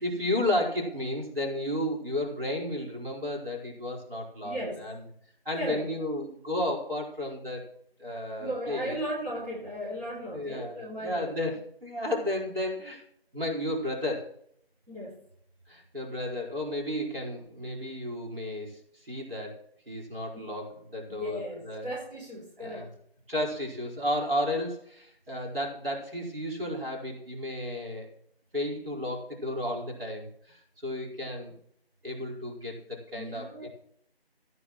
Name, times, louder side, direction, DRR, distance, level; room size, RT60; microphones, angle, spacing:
voice 1, 0.0-5.0 5.4-7.6 8.0-9.0 10.3-10.7 11.0-11.6 11.8-13.0 13.3-14.3 15.7-19.6 19.9-21.9 22.6-22.9 23.3-28.1 28.5-31.5 32.0-33.7, left 1 dB, 65° right, -1 dB, 4.8 m, -33 dB
voice 2, 4.4-4.8 5.5-5.9 8.4-11.3 14.9-15.2 20.3-20.5 21.1-22.9 33.1-33.7, equal, 40° right, -6 dB, 3.3 m, -36 dB
15.5 x 9.6 x 3.1 m, 0.66 s
figure-of-eight pair, 165°, 31 cm